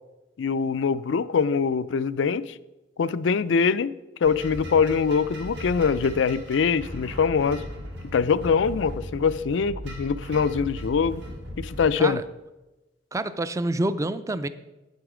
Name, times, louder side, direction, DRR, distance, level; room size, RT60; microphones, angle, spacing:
voice 1, 0.4-2.5 3.0-3.9 4.2-7.6 8.1-11.2 11.6-12.2, left 5 dB, 90° left, 0.4 m, -23 dB
sound 1, 4.2-11.9, equal, 75° right, 2.4 m, -37 dB
voice 2, 13.1-14.5, right 2 dB, 15° right, 0.4 m, -27 dB
9.4 x 8.1 x 4.9 m
head